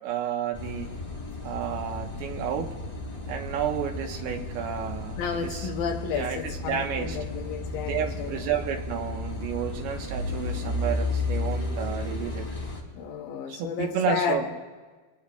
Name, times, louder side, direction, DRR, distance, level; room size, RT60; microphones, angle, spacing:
voice 1, 0.0-0.9 1.4-2.7 3.3-5.7 6.1-7.2 7.8-12.5 13.5-14.5, right 8 dB, 85° right, 3 dB, 3.0 m, -31 dB
Car passing by / Idling / Accelerating revving vroom, 0.5-12.8, left 2 dB, 10° left, 1.8 m, -33 dB
voice 2, 5.2-8.4 12.9-14.4, left 6 dB, 75° left, 4 dB, 2.7 m, -31 dB
25.0 x 20.0 x 2.3 m, 1.4 s
omnidirectional pair, 4.4 m